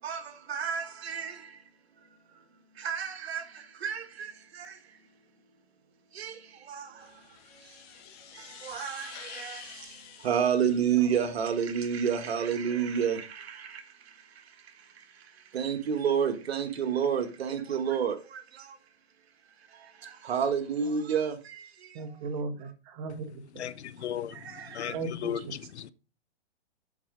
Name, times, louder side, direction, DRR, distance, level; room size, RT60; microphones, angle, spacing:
voice 1, 0.0-1.6 2.0-2.4 2.7-5.0 6.1-7.8 8.2-18.8 19.6-22.2 24.0-25.0, right 7 dB, 65° right, 1.4 m, -31 dB
sound 1, 7.0-11.7, left 8 dB, 40° left, 1.5 m, -49 dB
voice 2, 21.9-23.7 24.9-25.5, right 3 dB, 35° right, 1.2 m, -37 dB
voice 3, 23.6-24.4 24.7-25.0 25.2-25.9, left 9 dB, 75° left, 0.7 m, -35 dB
7.5 x 4.6 x 4.9 m
hypercardioid pair, 140°, 33 cm